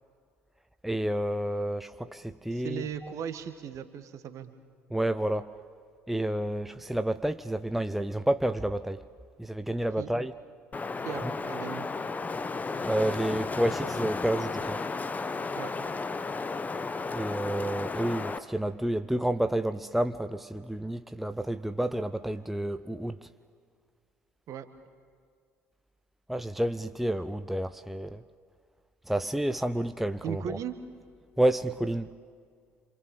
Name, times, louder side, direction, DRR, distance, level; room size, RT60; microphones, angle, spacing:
voice 1, 0.8-2.8 4.9-5.5 6.1-9.0 9.4-10.3 11.2-11.3 12.8-14.8 17.1-23.2 26.3-28.2 29.1-30.6 31.4-32.1, right 1 dB, 5° right, 0.7 m, -30 dB
voice 2, 2.5-4.5 10.0-10.1 11.0-11.9 15.6-15.7 24.5-24.7 30.2-30.8, right 9 dB, 50° right, 1.8 m, -37 dB
Wind, 10.7-18.4, left 4 dB, 20° left, 1.2 m, -33 dB
27.5 x 27.0 x 7.2 m
figure-of-eight pair, 55°, 7 cm